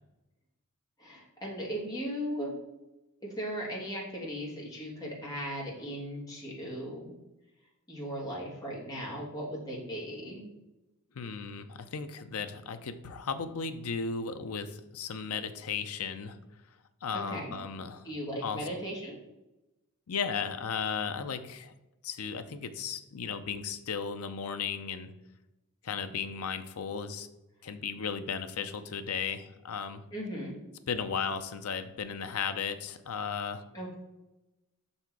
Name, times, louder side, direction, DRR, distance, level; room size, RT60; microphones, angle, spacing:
voice 1, 1.0-2.5 3.2-7.1 7.9-10.4 17.1-17.5 18.0-19.2 30.1-30.5 33.7-34.0, equal, 15° left, -4 dB, 1.7 m, -37 dB
voice 2, 11.2-16.4 17.0-18.1 18.4-18.6 20.1-21.7 22.0-25.1 25.8-27.3 27.6-30.0 30.9-33.6, left 6 dB, 70° left, 9 dB, 0.5 m, -35 dB
5.8 x 4.2 x 4.5 m, 0.99 s
head